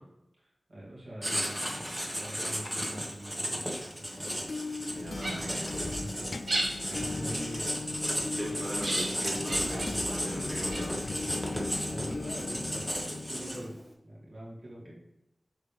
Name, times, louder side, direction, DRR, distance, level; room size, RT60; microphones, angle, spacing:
voice 1, 0.4-1.6 2.2-4.7 6.0-6.1 6.8-7.9 11.8-13.8 14.0-14.9, right 1 dB, 65° right, -6 dB, 2.9 m, -44 dB
Writing, 1.2-13.8, equal, 5° right, 1.8 m, -34 dB
sound 1, 4.1-13.8, left 3 dB, 60° left, 0.4 m, -38 dB
voice 2, 4.9-6.1 8.3-11.1 14.8-14.9, right 1 dB, 45° right, -5 dB, 3.0 m, -40 dB
sound 2, 4.9-12.3, right 1 dB, 80° right, 2.4 m, -38 dB
7.3 x 6.9 x 3.6 m, 0.85 s
wide cardioid pair, 65°, 0 cm